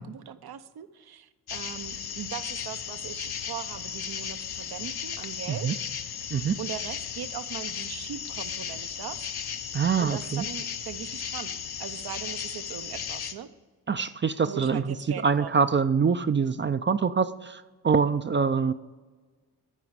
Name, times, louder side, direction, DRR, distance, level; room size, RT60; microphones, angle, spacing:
voice 1, 0.0-5.8 6.6-9.3 10.0-13.5 14.4-15.7, right 9 dB, 70° right, 12 dB, 0.7 m, -40 dB
sound 1, 1.5-13.3, left 8 dB, 70° left, 0.8 m, -35 dB
voice 2, 9.7-10.4 13.9-15.0 15.2-18.7, right 6 dB, 30° right, 11 dB, 0.4 m, -25 dB
12.5 x 4.9 x 4.7 m, 1.4 s
cardioid pair, 50°, 40 cm